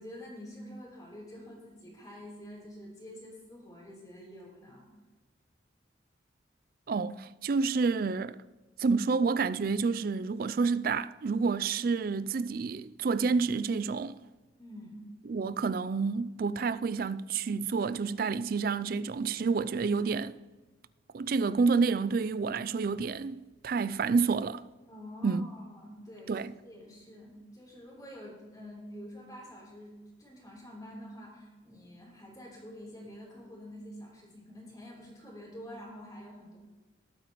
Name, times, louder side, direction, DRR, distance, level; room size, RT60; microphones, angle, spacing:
voice 1, 0.0-4.9 14.6-15.0 24.9-36.6, equal, 20° left, 3.6 m, -47 dB
voice 2, 6.9-8.4 8.8-14.2 15.3-20.4 21.1-24.6 25.2-25.5 26.3-26.5, right 4 dB, 50° right, 0.3 m, -29 dB
19.5 x 9.1 x 3.1 m
head